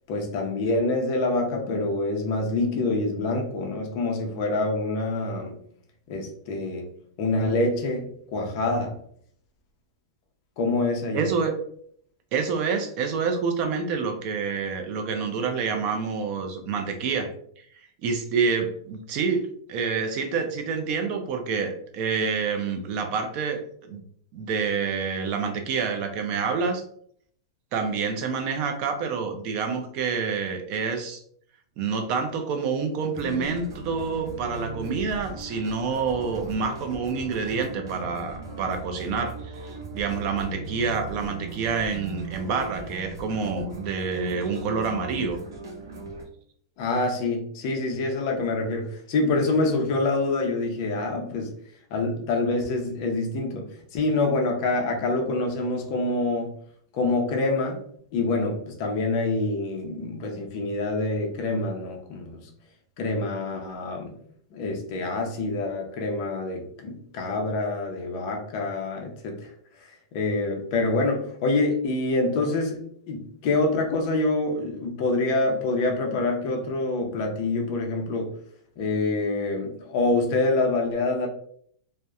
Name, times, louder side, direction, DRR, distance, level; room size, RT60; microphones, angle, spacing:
voice 1, 0.1-5.5 6.1-6.9 7.2-8.9 10.6-11.3 46.8-51.5 51.9-53.7 53.9-56.6 56.9-57.8 58.1-62.5 63.0-64.2 64.5-69.5 69.8-72.8 73.1-78.3 78.8-81.3, left 2 dB, 35° left, 2 dB, 0.5 m, -26 dB
voice 2, 11.1-11.6 12.3-17.3 17.6-17.7 18.0-23.6 23.9-24.0 24.3-26.8 27.7-31.2 31.8-45.4, right 5 dB, 30° right, 5 dB, 0.4 m, -27 dB
sound 1, 33.1-46.2, right 2 dB, 75° right, 0.7 m, -38 dB
2.8 x 2.0 x 2.3 m, 0.63 s
supercardioid pair, 175°, 2 cm